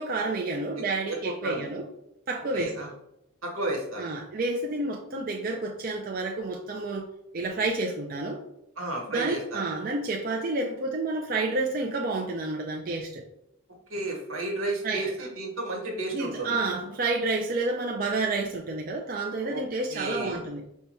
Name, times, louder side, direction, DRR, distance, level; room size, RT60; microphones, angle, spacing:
voice 1, 0.0-1.8 2.3-2.9 4.0-7.1 7.3-8.4 9.1-13.2 14.8-15.1 16.1-20.6, right 2 dB, 40° right, 0 dB, 0.4 m, -30 dB
voice 2, 1.1-1.7 2.5-2.9 3.4-4.1 8.8-9.6 13.9-16.6 19.4-19.6 19.9-20.4, right 2 dB, 80° right, 0 dB, 1.4 m, -32 dB
5.4 x 2.3 x 4.2 m, 0.81 s
head